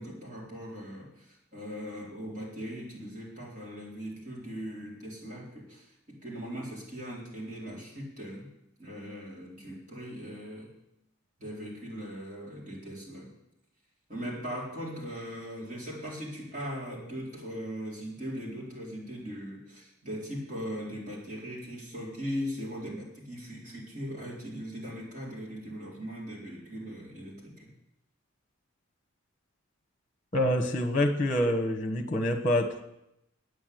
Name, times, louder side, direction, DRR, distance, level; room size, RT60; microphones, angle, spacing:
voice 1, 0.0-8.5 8.8-10.7 11.4-13.3 14.1-27.7, equal, 35° right, -4 dB, 4.2 m, -39 dB
voice 2, 30.3-32.8, left 1 dB, 35° left, 3 dB, 1.3 m, -26 dB
9.5 x 8.4 x 9.3 m, 0.84 s
head